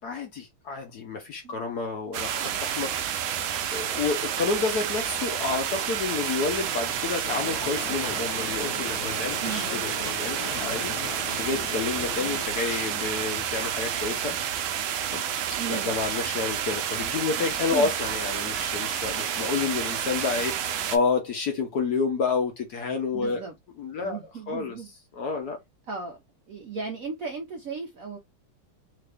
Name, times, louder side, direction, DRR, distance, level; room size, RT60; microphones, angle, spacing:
voice 1, 0.0-2.9 3.7-10.9 11.4-14.4 15.1-15.2 15.7-23.4 23.8-24.2 24.5-24.7 25.2-25.6, left 4 dB, 60° left, 1.1 m, -29 dB
sound 1, 2.1-21.0, right 9 dB, 80° right, 1.4 m, -30 dB
sound 2, 7.2-12.5, left 10 dB, 80° left, 1.4 m, -39 dB
voice 2, 9.4-9.8 15.6-15.9 17.3-17.4 17.7-17.9 23.1-23.6 24.0-24.9 25.9-28.2, right 5 dB, 65° right, 0.9 m, -36 dB
3.8 x 2.5 x 3.3 m
omnidirectional pair, 2.3 m